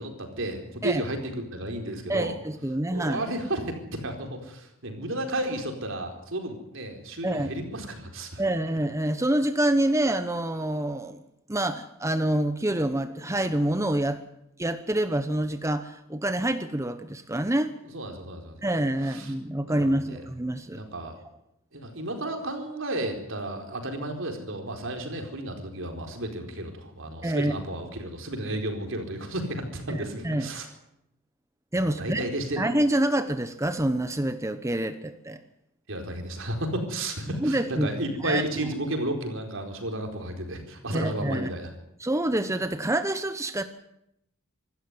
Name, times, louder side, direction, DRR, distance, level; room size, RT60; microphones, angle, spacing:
voice 1, 0.0-2.4 2.9-8.5 17.9-18.7 19.0-19.3 19.6-20.2 20.7-21.2 21.7-30.7 32.0-32.6 35.9-41.7, right 1 dB, 65° right, 4 dB, 4.4 m, -33 dB
voice 2, 2.1-3.2 7.2-7.5 8.4-11.2 11.5-14.2 14.6-17.8 18.6-20.8 27.2-27.5 29.9-30.5 31.7-32.3 32.6-35.4 37.3-37.9 38.2-38.4 40.9-41.5 42.0-43.6, right 1 dB, 15° right, 9 dB, 0.9 m, -27 dB
25.5 x 13.0 x 9.7 m, 0.82 s
head